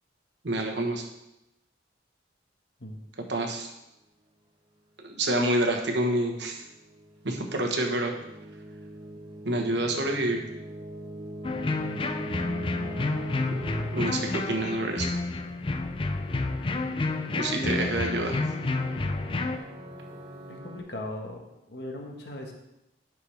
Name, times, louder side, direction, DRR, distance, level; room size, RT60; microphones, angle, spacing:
voice 1, 0.4-1.0 3.3-3.7 5.0-6.6 7.2-8.1 9.4-10.4 13.5-13.6 13.9-15.1 17.3-18.4, right 1 dB, 70° right, 2 dB, 1.2 m, -27 dB
sound 1, 6.2-20.8, equal, 25° right, 0.9 m, -43 dB
sound 2, 11.4-19.6, left 2 dB, 30° left, 0.4 m, -30 dB
voice 2, 17.5-18.0 20.5-22.5, left 1 dB, 60° left, 1 dB, 1.4 m, -37 dB
9.9 x 6.1 x 3.4 m, 0.89 s
head